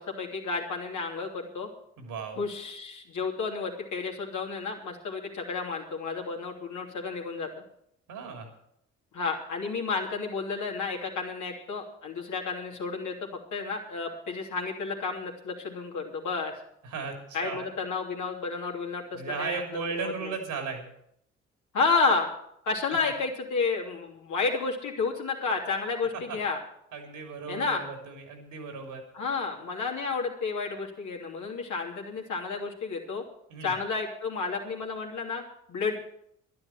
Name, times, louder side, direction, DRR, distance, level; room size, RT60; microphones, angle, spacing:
voice 1, 0.0-1.7 2.4-7.5 9.1-16.5 17.3-19.6 19.9-20.3 21.7-22.3 22.6-26.6 27.5-27.9 29.1-33.2 33.6-35.4 35.7-35.9, left 4 dB, 60° left, 0 dB, 2.9 m, -31 dB
voice 2, 2.0-2.4 8.1-8.5 16.8-17.7 19.1-20.9 26.3-26.4 26.9-29.0 33.5-33.7, right 5 dB, 70° right, 4 dB, 3.1 m, -36 dB
11.5 x 10.5 x 7.4 m, 0.74 s
hypercardioid pair, 45°, 33 cm